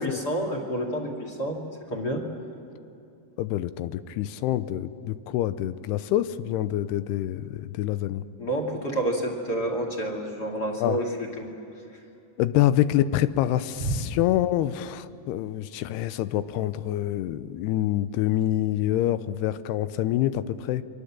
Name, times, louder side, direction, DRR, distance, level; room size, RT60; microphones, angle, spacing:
voice 1, 0.0-1.6 1.9-2.2 8.4-11.5 13.8-14.0, right 1 dB, 30° left, 1 dB, 2.7 m, -29 dB
voice 2, 3.4-8.2 10.8-11.0 12.4-20.8, left 13 dB, 85° left, 13 dB, 2.8 m, -26 dB
29.0 x 24.0 x 7.5 m, 2.7 s
omnidirectional pair, 4.6 m